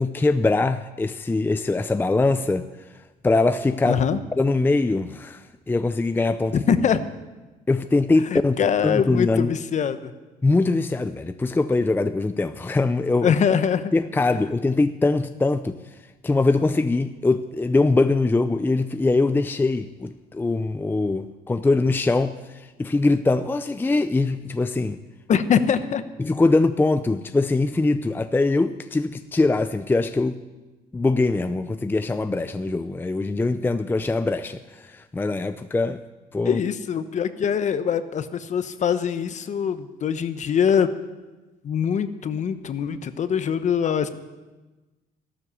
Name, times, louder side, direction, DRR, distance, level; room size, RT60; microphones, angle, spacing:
voice 1, 0.0-2.7 2.9-4.0 4.4-6.6 7.7-8.6 8.8-9.5 10.4-13.3 13.9-16.0 16.2-25.0 26.2-30.4 30.9-36.0 36.3-36.6, left 3 dB, 10° left, 10 dB, 0.5 m, -22 dB
voice 2, 3.9-4.2 6.5-7.0 8.3-10.1 13.2-13.9 25.3-26.0 36.4-40.9 41.6-44.1, left 7 dB, 45° left, 12 dB, 1.0 m, -23 dB
14.0 x 12.5 x 6.9 m, 1.2 s
cardioid pair, 110°, 17 cm